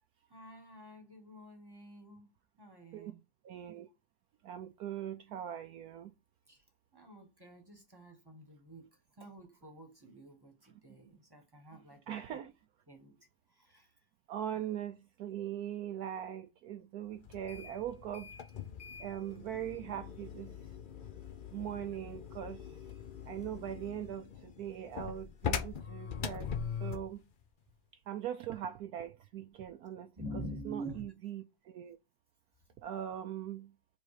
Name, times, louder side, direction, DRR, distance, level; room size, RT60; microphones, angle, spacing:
voice 1, 0.3-2.3 2.6-3.2 6.5-6.6 6.9-8.9 9.2-12.5 12.9-13.9 14.5-14.6 29.6-29.7 30.2-31.1, right 1 dB, 15° right, 1.3 m, -48 dB
voice 2, 3.4-3.9 4.4-6.1 12.1-12.5 14.3-18.3 19.0-20.6 21.5-22.6 23.3-26.5 26.8-27.2 28.1-30.1 30.7-32.0 32.8-33.7, right 10 dB, 70° right, 1.0 m, -41 dB
sound 1, 17.2-27.2, left 7 dB, 75° left, 0.4 m, -42 dB
5.4 x 4.0 x 4.9 m
omnidirectional pair, 1.9 m